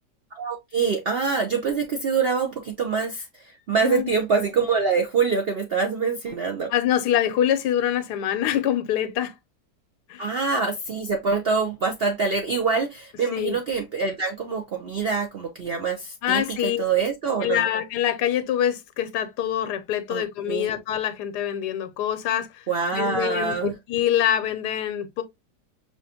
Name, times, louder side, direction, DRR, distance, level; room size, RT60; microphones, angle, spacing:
voice 1, 0.4-6.7 10.2-17.7 20.1-20.7 22.7-23.7, right 5 dB, 65° right, 0.5 m, -25 dB
voice 2, 6.7-9.3 10.1-10.3 13.3-13.6 16.2-16.8 17.4-25.2, left 10 dB, 85° left, 1.2 m, -25 dB
5.4 x 2.5 x 2.7 m
omnidirectional pair, 1.8 m